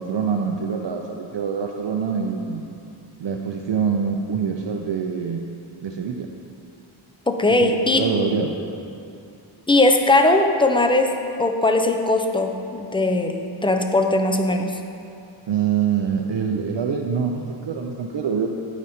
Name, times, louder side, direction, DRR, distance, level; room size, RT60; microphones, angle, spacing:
voice 1, 0.0-2.7 3.2-5.4 5.8-6.3 7.5-8.6 15.5-18.5, right 6 dB, 60° right, 2 dB, 0.6 m, -25 dB
voice 2, 7.3-8.1 9.7-14.8, left 2 dB, 10° left, 4 dB, 0.6 m, -19 dB
9.3 x 5.1 x 4.2 m, 2.6 s
wide cardioid pair, 45°, 49 cm